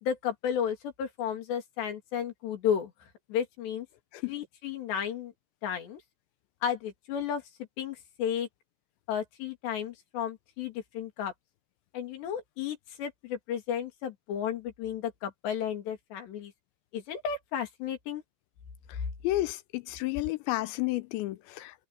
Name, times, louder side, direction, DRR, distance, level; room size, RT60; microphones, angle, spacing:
voice 1, 0.0-2.9 3.3-3.9 4.3-5.3 5.6-6.0 6.6-7.4 7.8-8.5 9.1-11.3 11.9-16.5 16.9-18.2, left 8 dB, 70° left, 5.0 m, -33 dB
voice 2, 19.2-21.9, left 17 dB, 85° left, 3.0 m, -31 dB
open air
omnidirectional pair, 5.2 m